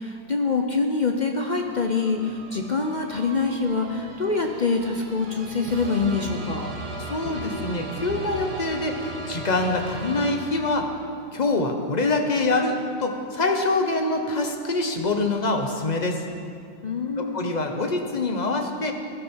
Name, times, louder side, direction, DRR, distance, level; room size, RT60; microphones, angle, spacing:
voice 1, 0.0-6.7 16.8-17.5, left 4 dB, 50° left, 3 dB, 0.5 m, -25 dB
sound 1, 1.5-11.0, right 2 dB, 70° right, 1.8 m, -37 dB
voice 2, 7.0-10.9 11.3-16.2 17.2-18.9, left 2 dB, 30° left, 4 dB, 1.0 m, -25 dB
17.5 x 13.0 x 4.6 m, 2.4 s
omnidirectional pair, 1.8 m